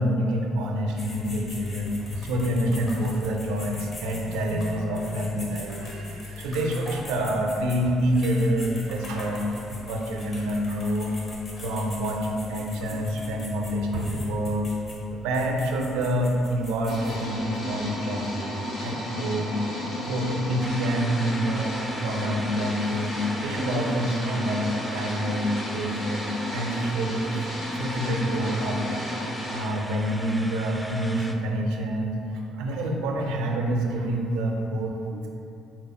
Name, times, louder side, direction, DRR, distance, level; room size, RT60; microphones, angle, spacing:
voice 1, 0.0-9.4 9.7-11.2 11.6-14.7 15.1-19.6 19.8-21.7 22.0-26.3 26.5-27.5 27.7-29.2 29.5-35.3, equal, 80° right, 1 dB, 0.4 m, -27 dB
sound 1, 1.0-17.2, left 3 dB, 50° left, 1.0 m, -42 dB
sound 2, 16.9-29.6, left 1 dB, 70° left, 1.4 m, -33 dB
sound 3, 20.6-31.4, equal, ahead, 0.4 m, -39 dB
4.4 x 2.1 x 4.1 m, 2.8 s
supercardioid pair, 65°, 0 cm